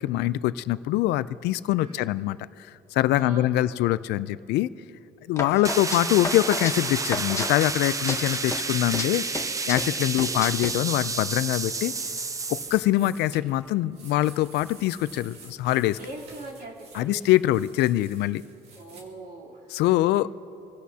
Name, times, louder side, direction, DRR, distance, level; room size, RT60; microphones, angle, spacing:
voice 1, 0.0-4.7 5.3-9.2 9.7-11.9 12.5-16.0 16.9-18.4 19.7-20.3, left 15 dB, 85° left, 16 dB, 0.4 m, -24 dB
voice 2, 1.8-2.1 3.1-3.8 5.5-6.0 10.0-10.6 12.8-13.1 16.0-17.2 18.7-19.7, right 2 dB, 60° right, -3 dB, 3.5 m, -42 dB
sound 1, 5.4-7.8 8.1-9.1 9.3-10.7, left 3 dB, 15° left, 1.0 m, -32 dB
sound 2, 5.6-12.8, right 4 dB, 20° right, 0.6 m, -30 dB
sound 3, 10.9-19.0, right 4 dB, 85° right, 2.3 m, -50 dB
27.0 x 16.5 x 2.8 m, 2.9 s
cardioid pair, 125°, 17 cm